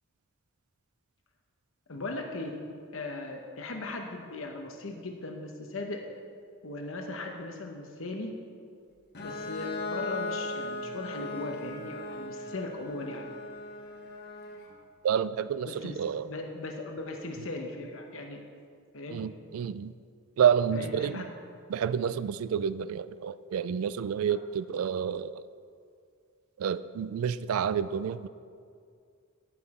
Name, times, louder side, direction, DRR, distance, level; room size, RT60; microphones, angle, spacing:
voice 1, 1.9-2.6 2.9-6.1 6.6-8.4 9.2-13.3 15.6-18.4 18.9-19.2 20.7-21.3 24.3-24.4, left 2 dB, 70° left, 3 dB, 0.9 m, -38 dB
Bowed string instrument, 9.1-14.7, left 2 dB, 50° left, 1.3 m, -38 dB
voice 2, 15.0-16.3 19.1-19.9 20.4-21.2 21.7-25.4 26.6-28.3, right 8 dB, 90° right, 15 dB, 0.3 m, -29 dB
9.9 x 9.1 x 4.2 m, 2.2 s
head